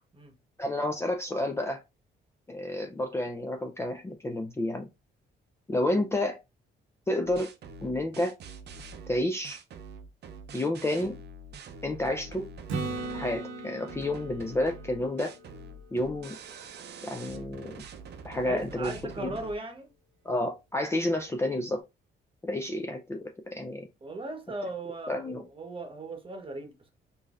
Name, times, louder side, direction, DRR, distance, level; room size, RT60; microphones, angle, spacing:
voice 1, 0.6-1.8 2.5-4.9 5.7-6.4 7.1-7.5 7.8-8.3 9.1-9.6 10.5-11.2 11.8-12.5 13.1-15.3 15.9-16.4 17.0-17.7 18.2-18.9 19.2-19.3 20.2-21.8 22.4-23.9 25.1-25.4, left 1 dB, 15° left, 0.4 m, -30 dB
sound 1, 7.3-13.4 13.9-19.5, right 4 dB, 55° right, 0.6 m, -45 dB
Acoustic guitar / Strum, 12.7-16.5 21.3-21.4, right 3 dB, 85° right, 0.8 m, -39 dB
voice 2, 18.4-19.9 24.0-26.9, right 2 dB, 25° right, 1.0 m, -38 dB
3.7 x 2.7 x 2.4 m
cardioid pair, 90°, 20 cm